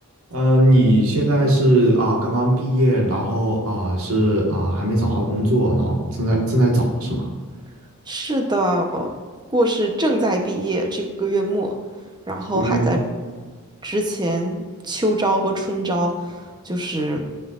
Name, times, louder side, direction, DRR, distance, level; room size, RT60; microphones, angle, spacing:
voice 1, 0.3-7.3 12.5-13.0, right 1 dB, 75° right, -2 dB, 1.7 m, -19 dB
voice 2, 8.1-9.1 9.5-11.7 12.3-13.0 13.8-16.4 16.6-17.2, right 1 dB, 20° right, 2 dB, 0.9 m, -23 dB
13.0 x 5.6 x 2.5 m, 1.5 s
head